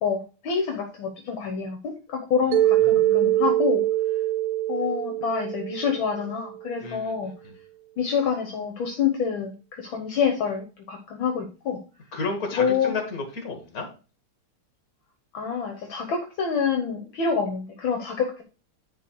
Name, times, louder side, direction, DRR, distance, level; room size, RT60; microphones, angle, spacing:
voice 1, 0.0-3.8 4.7-7.3 8.0-11.8 12.5-12.9 15.3-18.4, left 6 dB, 65° left, 4 dB, 1.8 m, -27 dB
Mallet percussion, 2.5-6.7, right 14 dB, 75° right, 1.3 m, -23 dB
voice 2, 2.9-3.5 6.8-7.6 12.1-13.9, left 3 dB, 45° left, 5 dB, 2.3 m, -33 dB
10.5 x 4.0 x 4.6 m, 0.34 s
omnidirectional pair, 2.4 m